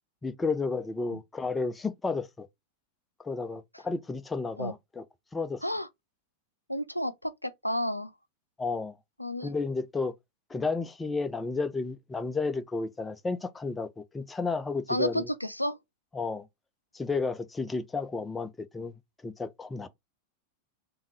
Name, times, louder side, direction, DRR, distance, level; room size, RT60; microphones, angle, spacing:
voice 1, 0.2-2.5 3.2-5.0 5.3-5.6 8.6-9.0 9.4-10.1 10.5-15.3 16.1-16.5 16.9-18.9 19.2-19.9, left 4 dB, 10° left, 0.4 m, -32 dB
voice 2, 6.7-8.1 9.2-9.5 14.9-15.8, equal, 90° left, 0.4 m, -31 dB
3.6 x 2.6 x 3.0 m
figure-of-eight pair, 90°, 0 cm